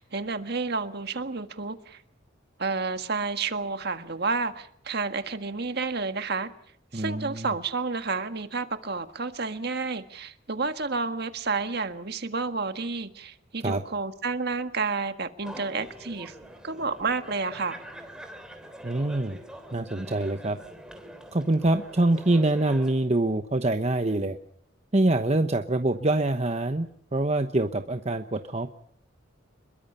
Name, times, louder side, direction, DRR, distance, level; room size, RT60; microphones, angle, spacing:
voice 1, 0.0-2.0 2.6-6.5 6.9-16.3 16.6-17.8, right 4 dB, 50° right, 9 dB, 1.6 m, -30 dB
voice 2, 6.9-7.5 13.6-13.8 18.8-19.4 19.7-20.6 21.3-24.4 24.9-28.7, right 2 dB, 35° right, 7 dB, 1.0 m, -25 dB
sound 1, 15.4-22.9, equal, 5° right, 3.3 m, -45 dB
27.0 x 22.5 x 5.5 m, 0.69 s
head